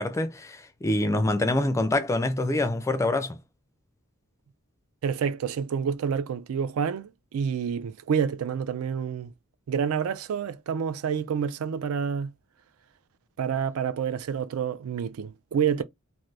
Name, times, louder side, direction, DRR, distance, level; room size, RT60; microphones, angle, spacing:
voice 1, 0.0-3.4, left 2 dB, 15° left, 0.3 m, -25 dB
voice 2, 5.0-9.3 9.7-12.3 13.4-15.8, right 7 dB, 70° right, 0.3 m, -28 dB
2.5 x 2.5 x 3.1 m
head